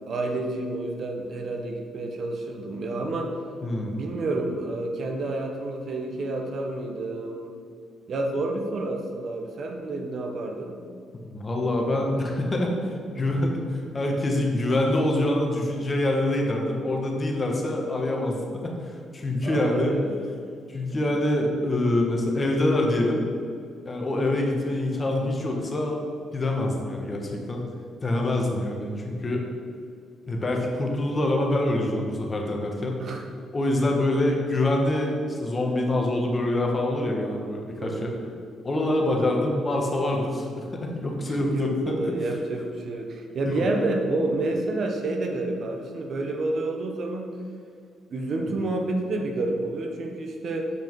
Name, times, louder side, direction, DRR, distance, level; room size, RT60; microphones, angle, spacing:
voice 1, 0.0-3.3 3.9-7.5 8.1-10.7 13.1-13.3 19.4-20.2 33.0-33.2 37.8-38.2 41.3-47.4 48.1-50.7, right 2 dB, 55° right, 3 dB, 1.0 m, -29 dB
voice 2, 3.6-3.9 11.3-12.7 13.1-20.0 20.7-23.2 23.8-26.0 26.3-27.6 28.0-29.4 30.3-33.0 33.5-38.1 38.6-42.1 43.4-43.6, left 1 dB, 30° left, 1 dB, 1.4 m, -25 dB
8.1 x 5.1 x 4.7 m, 2.2 s
cardioid pair, 90°, 0 cm